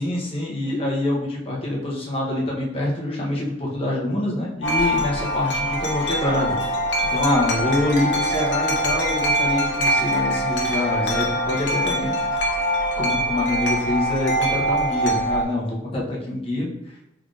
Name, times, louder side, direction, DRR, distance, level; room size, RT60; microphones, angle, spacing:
voice 1, 0.0-6.5 7.1-12.1 13.0-16.7, left 1 dB, 35° left, -4 dB, 0.9 m, -25 dB
Wind chime, 4.6-15.4, equal, 75° left, 0.7 m, -23 dB
3.7 x 3.5 x 2.5 m, 0.89 s
head